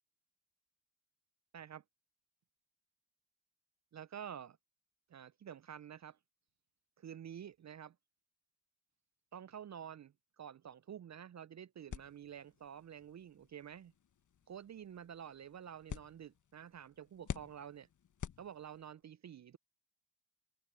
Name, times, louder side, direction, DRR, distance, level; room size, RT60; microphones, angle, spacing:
voice 1, 1.5-1.8 3.9-4.6 5.1-6.2 7.0-7.9 9.3-13.9 14.5-17.9 18.4-19.6, right 9 dB, 35° right, 0.8 m, -49 dB
sound 1, 11.9-19.0, left 8 dB, 40° left, 1.5 m, -50 dB
hypercardioid pair, 45°, 45 cm